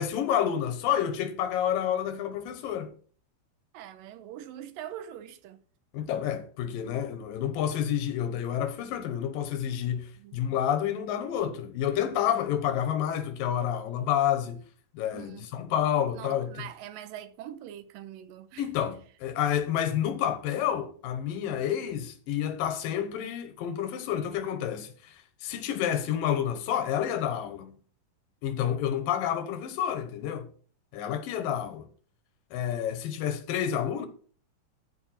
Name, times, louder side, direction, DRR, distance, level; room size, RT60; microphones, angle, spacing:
voice 1, 0.0-2.9 5.9-14.6 14.9-16.5 18.6-27.7 28.4-30.5 30.9-31.9 32.5-34.1, left 9 dB, 90° left, 2.8 m, -29 dB
voice 2, 3.7-5.6 10.2-10.5 15.1-15.5 16.1-18.7, right 11 dB, 90° right, 2.5 m, -43 dB
13.5 x 4.6 x 5.7 m
omnidirectional pair, 3.9 m